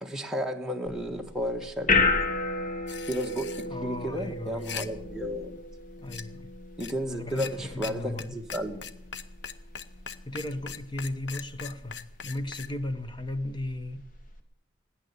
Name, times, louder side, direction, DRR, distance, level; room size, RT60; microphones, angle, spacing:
voice 1, 0.0-1.9 3.1-3.5 3.8-5.6 6.8-8.8, equal, 5° right, 1.4 m, -33 dB
sound 1, 0.9-14.4, left 3 dB, 45° left, 1.7 m, -34 dB
sound 2, 2.9-3.7 4.5-4.9 6.1-6.2 6.8-6.9 7.3-7.5 7.8-7.9 8.2-8.3 8.5-12.7, left 7 dB, 65° left, 0.8 m, -39 dB
voice 2, 3.7-4.9 6.0-6.5 7.1-8.3 10.2-14.1, left 1 dB, 25° left, 1.0 m, -36 dB
17.0 x 9.9 x 8.1 m
head